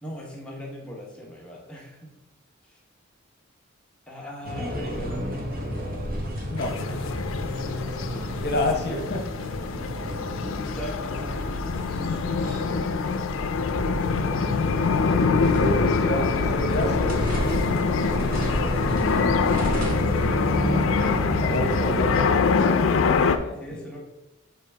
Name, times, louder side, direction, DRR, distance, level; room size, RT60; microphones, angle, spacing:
voice 1, 0.0-2.1 2.7-2.8 4.1-5.2 7.7-8.4 10.7-15.8 23.6-24.0, equal, 5° left, -3 dB, 1.1 m, -41 dB
sound 1, 4.4-22.2, equal, 45° right, 1.1 m, -30 dB
sound 2, 6.6-23.4, left 5 dB, 70° left, 0.4 m, -25 dB
voice 2, 8.4-9.2 15.0-15.1 15.5-17.3 20.5-21.1 21.4-23.8, left 1 dB, 55° left, 1 dB, 0.9 m, -30 dB
6.7 x 4.6 x 3.4 m, 1.0 s
head